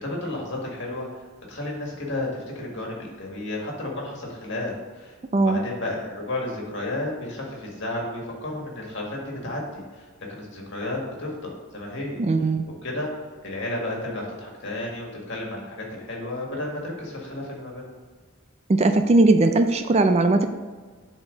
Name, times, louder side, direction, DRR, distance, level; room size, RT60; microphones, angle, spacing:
voice 1, 0.0-5.2 5.4-12.5 12.8-13.1 13.4-17.8, left 1 dB, 60° left, -1 dB, 2.0 m, -32 dB
voice 2, 12.2-12.6 18.7-20.5, right 2 dB, 30° right, 8 dB, 0.4 m, -19 dB
10.5 x 4.2 x 3.9 m, 1.4 s
head